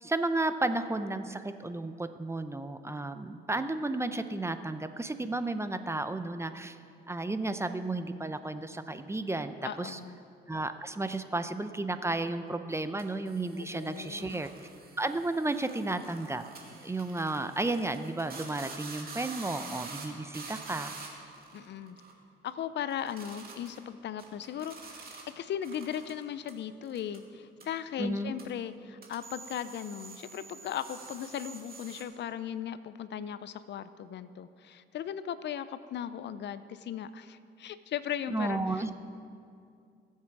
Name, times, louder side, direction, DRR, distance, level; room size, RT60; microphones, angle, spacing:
voice 1, 0.0-6.8 7.1-10.0 10.5-14.5 15.0-16.4 16.8-21.0 28.0-28.3 38.3-38.9, right 2 dB, 15° right, 10 dB, 0.6 m, -33 dB
voice 2, 9.6-10.2 13.5-14.4 21.5-22.0 22.4-25.1 25.4-39.0, left 9 dB, 65° left, 14 dB, 0.5 m, -38 dB
sound 1, 13.0-22.1 22.4-22.6 22.9-23.8 24.2-25.3 25.6-26.5 26.8-27.2 27.6-27.7 28.4-28.5 29.0-32.0, right 4 dB, 50° right, 2.4 m, -47 dB
21.0 x 7.5 x 4.7 m, 2.4 s
cardioid pair, 90°, 20 cm